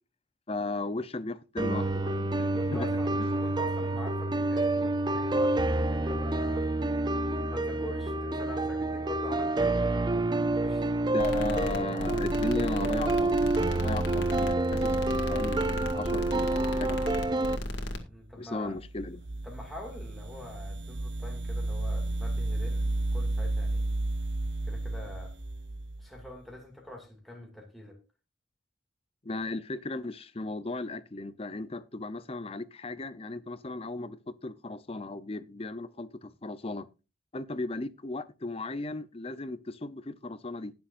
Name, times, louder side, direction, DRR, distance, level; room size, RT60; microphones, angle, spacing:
voice 1, 0.5-2.9 11.0-13.4 13.7-17.4 18.4-19.2 29.2-36.9 37.3-40.7, left 2 dB, 30° left, 0.6 m, -36 dB
sound 1, 1.6-17.6, right 2 dB, 25° right, 0.4 m, -28 dB
voice 2, 2.5-6.7 7.5-11.1 18.0-18.7 19.4-23.9 24.7-25.3 26.0-28.0, left 2 dB, ahead, 2.2 m, -45 dB
sound 2, 11.2-18.0, left 1 dB, 65° left, 2.0 m, -34 dB
sound 3, 18.8-26.3, right 2 dB, 60° right, 0.8 m, -32 dB
20.0 x 7.0 x 2.5 m
head